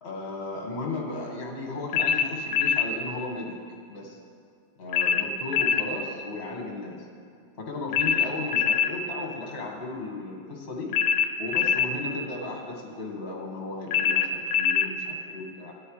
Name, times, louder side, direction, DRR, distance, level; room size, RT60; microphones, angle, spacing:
voice 1, 0.0-3.6 3.9-4.2 4.8-7.1 7.6-10.9 11.4-15.7, left 3 dB, 35° left, -1 dB, 1.7 m, -35 dB
sound 1, 1.9-2.9 4.9-5.9 7.9-8.9 10.9-11.9 13.9-14.9, left 8 dB, 80° left, 1.3 m, -23 dB
13.5 x 9.2 x 3.2 m, 2.2 s
omnidirectional pair, 2.0 m